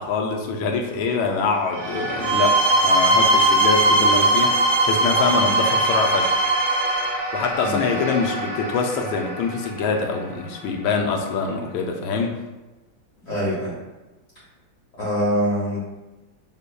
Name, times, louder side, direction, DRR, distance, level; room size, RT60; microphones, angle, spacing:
voice 1, 0.0-6.3 7.3-12.4, left 4 dB, 85° left, 2 dB, 1.4 m, -24 dB
sound 1, 1.6-12.2, right 2 dB, 50° right, 1.2 m, -30 dB
sound 2, 2.2-7.1, right 2 dB, 25° right, 0.7 m, -19 dB
voice 2, 7.6-8.0 13.3-13.8 15.0-15.8, equal, 45° left, -8 dB, 1.8 m, -24 dB
5.5 x 3.4 x 2.2 m, 1.1 s
omnidirectional pair, 2.2 m